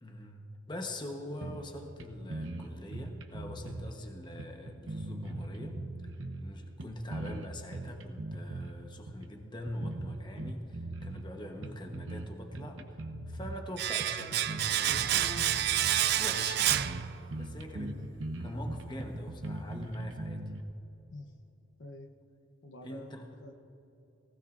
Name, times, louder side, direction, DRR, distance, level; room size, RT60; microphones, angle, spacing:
voice 1, 0.0-5.8 6.4-13.0 13.3-15.7 16.1-16.8 17.3-18.0 18.4-20.5 22.8-23.3, left 1 dB, 25° left, 3 dB, 1.0 m, -43 dB
sound 1, 1.4-2.0 2.3-3.9 4.4-6.5 6.8-8.7 9.1-9.3 9.7-11.3 11.6-12.3 12.5-13.6 14.0-16.1 16.4-16.5 16.7-17.0 17.3-20.6, right 2 dB, 75° right, 0.8 m, -40 dB
Domestic sounds home sounds, 13.8-17.6 17.8-18.0, right 11 dB, 55° right, 0.4 m, -29 dB
voice 2, 17.8-18.1 21.1-21.3 21.8-22.1 22.6-23.1 23.4-23.6, left 2 dB, 65° left, 5 dB, 0.8 m, -47 dB
18.5 x 16.5 x 2.5 m, 2.9 s
head